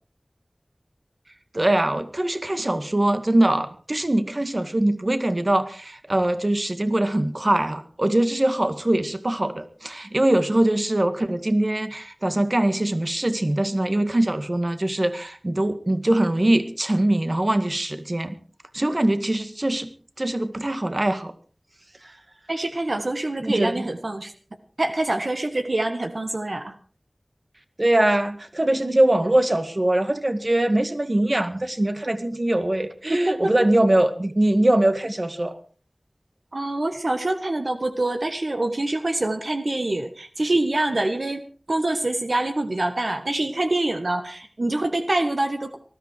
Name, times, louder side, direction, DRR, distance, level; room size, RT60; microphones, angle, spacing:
voice 1, 1.5-18.4 18.7-19.9 20.2-21.3 23.4-23.8 27.8-35.5, right 1 dB, 50° right, 10 dB, 1.9 m, -22 dB
voice 2, 22.5-24.3 24.8-26.7 33.3-33.5 36.5-41.4 41.7-45.8, right 2 dB, 75° right, 7 dB, 1.5 m, -25 dB
20.0 x 13.5 x 4.7 m, 0.40 s
wide cardioid pair, 40°, 0 cm